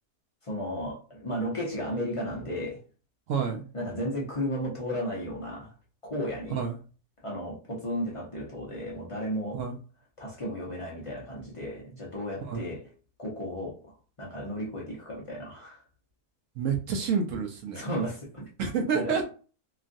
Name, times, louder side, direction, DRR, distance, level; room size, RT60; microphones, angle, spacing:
voice 1, 0.4-2.8 3.7-5.7 6.0-6.6 7.2-9.7 10.2-12.9 13.2-15.8 17.7-18.5 18.9-19.2, equal, 40° left, 0.4 m, -34 dB
voice 2, 3.3-3.7 6.5-6.8 9.5-9.8 12.4-12.7 16.6-17.8 18.6-19.2, right 6 dB, 65° right, 0.8 m, -29 dB
3.0 x 2.4 x 2.5 m
omnidirectional pair, 1.7 m